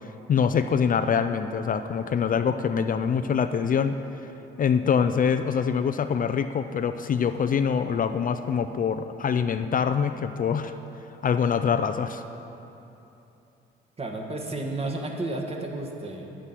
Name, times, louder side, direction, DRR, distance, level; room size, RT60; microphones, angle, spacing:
voice 1, 0.3-4.0 4.6-10.7 11.2-12.2, left 7 dB, 45° left, 9 dB, 0.5 m, -24 dB
voice 2, 14.0-16.5, right 2 dB, 30° right, 2 dB, 1.6 m, -32 dB
9.8 x 9.6 x 5.8 m, 2.9 s
cardioid pair, 90°, 20 cm